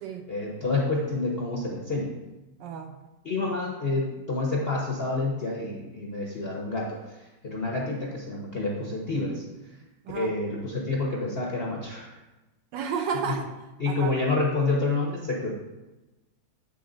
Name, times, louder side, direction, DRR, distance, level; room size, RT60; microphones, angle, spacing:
voice 1, 0.3-2.1 3.2-9.8 10.1-12.1 13.3-13.4 13.8-15.5, left 3 dB, 55° left, -3 dB, 0.7 m, -28 dB
voice 2, 2.6-3.0 10.0-10.3 12.7-13.6 13.9-14.2, right 6 dB, 75° right, 6 dB, 1.2 m, -32 dB
8.4 x 4.0 x 3.8 m, 1.1 s
omnidirectional pair, 2.2 m